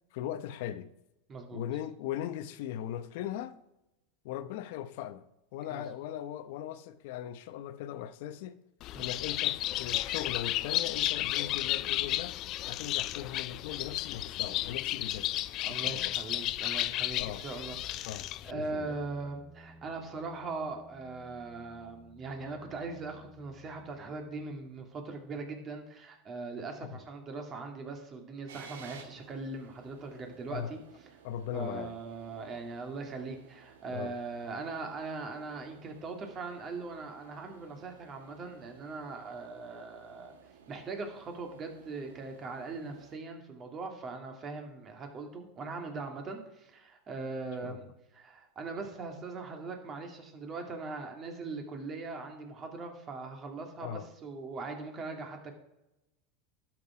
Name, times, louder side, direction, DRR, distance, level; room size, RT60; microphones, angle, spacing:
voice 1, 0.1-0.9 1.5-3.6 4.2-5.2 5.5-8.6 9.0-12.4 12.7-16.1 17.2-17.5 18.0-19.0 26.9-27.0 30.5-30.7 31.2-31.9 33.9-34.1 47.6-47.8 53.8-54.1, left 11 dB, 70° left, 0.8 m, -39 dB
voice 2, 1.3-1.6 5.7-5.8 8.9-9.1 15.6-18.2 18.4-30.8 31.5-40.3 40.7-47.9 48.1-55.6, right 3 dB, 30° right, 2.3 m, -40 dB
Bird, 8.8-18.5, left 15 dB, 50° left, 0.4 m, -33 dB
sound 1, 17.7-25.1, left 2 dB, 15° left, 0.9 m, -57 dB
sound 2, 28.5-43.2, right 6 dB, 85° right, 1.4 m, -56 dB
12.0 x 6.0 x 4.9 m
supercardioid pair, 115°, 0 cm